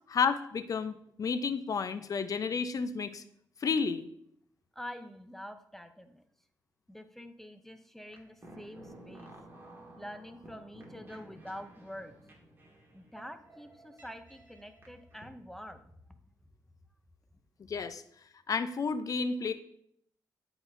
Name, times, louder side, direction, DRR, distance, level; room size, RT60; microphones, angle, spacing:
voice 1, 0.1-3.2 3.6-4.1 17.7-18.0 18.5-19.5, left 5 dB, 50° left, 11 dB, 0.6 m, -31 dB
voice 2, 4.8-6.2 6.9-9.3 10.0-12.1 12.9-15.9, equal, 5° left, 8 dB, 0.6 m, -46 dB
sound 1, 8.0-15.2, right 1 dB, 30° right, 1.7 m, -54 dB
11.0 x 3.9 x 2.6 m, 0.68 s
cardioid pair, 70°, 7 cm